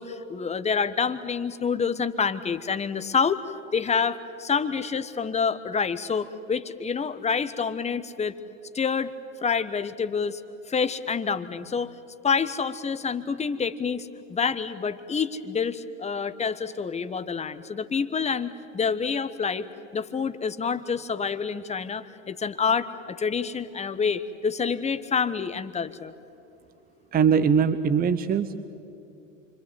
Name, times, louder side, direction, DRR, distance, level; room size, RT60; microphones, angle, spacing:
voice 1, 0.0-3.4 3.7-8.3 8.7-9.1 9.4-10.4 10.7-11.9 12.2-19.7 19.9-26.1, left 6 dB, 15° left, 12 dB, 1.3 m, -27 dB
voice 2, 27.1-28.7, right 6 dB, 20° right, 13 dB, 1.0 m, -22 dB
29.0 x 25.0 x 8.2 m, 2.7 s
figure-of-eight pair, 85°, 41 cm